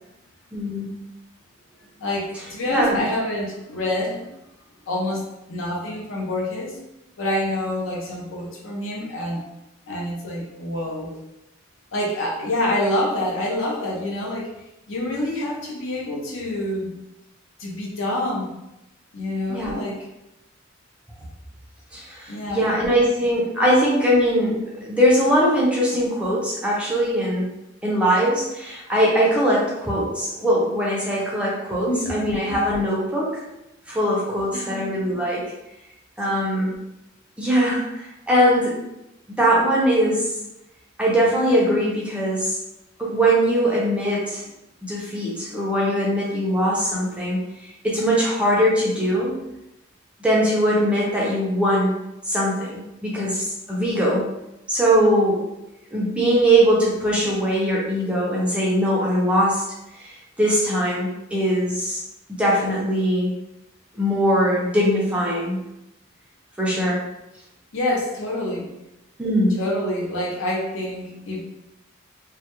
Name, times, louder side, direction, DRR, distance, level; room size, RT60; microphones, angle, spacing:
voice 1, 0.5-0.9 2.7-3.0 19.5-19.7 21.9-27.5 27.8-33.4 33.9-35.5 36.2-36.7 37.4-38.8 39.3-40.3 41.0-42.6 43.0-44.4 44.8-47.4 47.8-49.3 50.2-51.9 52.2-54.2 54.7-55.4 55.9-59.6 60.0-62.0 62.3-63.3 64.0-65.6 66.6-67.0 69.2-69.6, equal, 5° right, -5 dB, 0.4 m, -21 dB
voice 2, 2.0-4.3 4.9-5.2 5.5-6.8 7.2-9.4 9.9-11.2 11.9-14.5 14.9-16.9 17.6-18.6 19.1-20.1 22.3-22.7 31.9-32.3 34.5-35.0 36.3-36.7 67.7-68.7 69.6-71.4, left 1 dB, 65° left, -3 dB, 0.6 m, -27 dB
2.3 x 2.1 x 2.9 m, 0.91 s
head